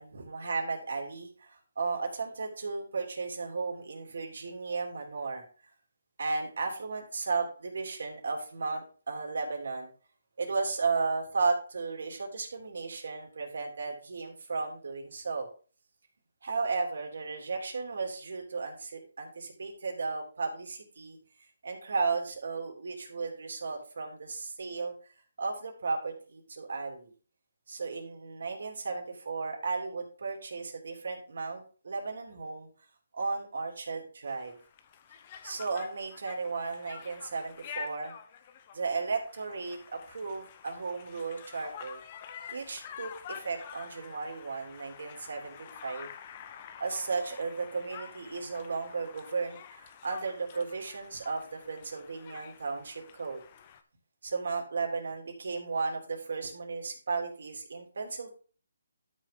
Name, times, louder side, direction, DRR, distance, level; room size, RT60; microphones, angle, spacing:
voice 1, 0.0-5.4 6.2-9.9 10.4-15.5 16.4-21.2 21.6-24.9 25.4-27.1 27.7-32.7 33.1-34.6 35.4-38.1 38.7-42.0 42.5-46.1 46.8-53.4 54.2-58.3, right 4 dB, 65° right, 2 dB, 3.4 m, -34 dB
Conversation, 34.3-53.8, left 8 dB, 30° left, 0.9 m, -48 dB
12.0 x 6.4 x 3.8 m, 0.39 s
hypercardioid pair, 165°, 0 cm